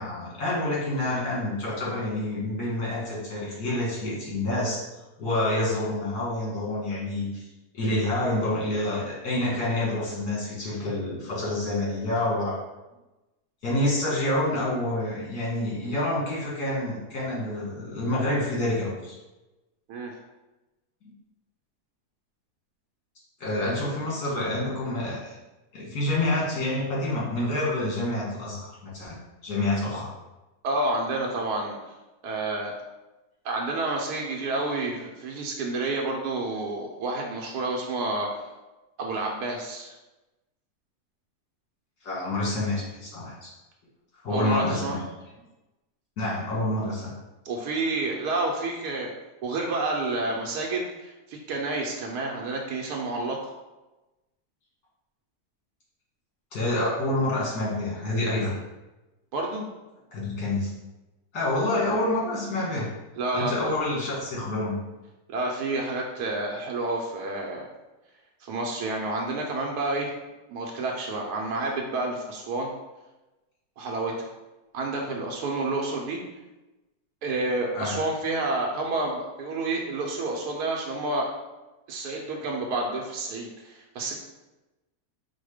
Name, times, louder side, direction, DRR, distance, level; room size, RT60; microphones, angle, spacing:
voice 1, 0.0-4.8 5.2-7.4 7.7-12.6 13.6-19.2 23.4-25.2 25.7-29.2 29.4-30.1 42.0-43.5 44.2-45.0 46.2-47.1 56.5-58.6 60.1-60.7 61.3-62.9 63.3-64.8 77.7-77.9, left 1 dB, 80° left, -5 dB, 2.1 m, -27 dB
voice 2, 30.6-31.8 32.2-32.7 33.4-38.4 39.0-39.9 44.3-45.0 47.4-49.1 49.4-53.5 59.3-59.7 63.2-63.7 65.3-67.7 68.4-70.1 70.5-72.7 73.8-74.3 74.7-76.2 77.2-81.3 81.9-84.2, right 2 dB, 85° right, 0 dB, 1.2 m, -29 dB
4.9 x 2.1 x 4.8 m, 1.0 s
omnidirectional pair, 1.7 m